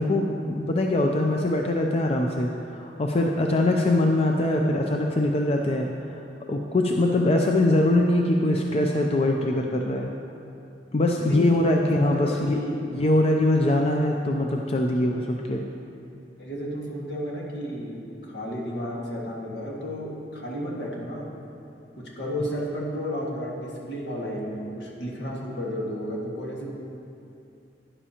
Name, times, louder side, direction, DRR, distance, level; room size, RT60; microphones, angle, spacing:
voice 1, 0.0-6.2 6.5-10.1 10.9-12.6 12.9-15.6, left 1 dB, 35° left, 1 dB, 0.5 m, -23 dB
voice 2, 11.2-12.9 16.4-21.3 22.2-26.7, equal, 75° left, -3 dB, 1.8 m, -32 dB
12.0 x 10.0 x 2.9 m, 2.7 s
head